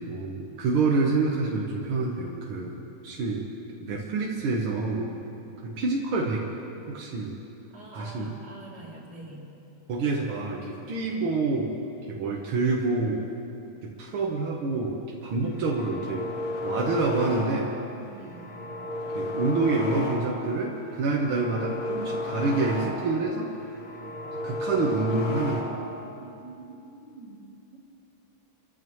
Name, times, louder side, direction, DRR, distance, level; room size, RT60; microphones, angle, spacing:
voice 1, 0.1-3.5 3.8-5.1 5.6-6.4 6.9-7.4 7.9-8.3 9.9-11.8 12.1-13.3 13.8-16.3 16.6-17.8 19.1-23.5 24.4-25.7, right 3 dB, 85° right, -2 dB, 2.1 m, -27 dB
voice 2, 7.7-9.5 18.1-18.6 26.2-27.4 27.7-27.8, right 2 dB, 50° right, -5 dB, 3.4 m, -45 dB
sound 1, 15.5-17.9 18.2-20.6 20.9-23.3 23.6-26.0, left 2 dB, 70° left, 2.0 m, -33 dB
27.5 x 14.0 x 3.1 m, 2.8 s
omnidirectional pair, 2.3 m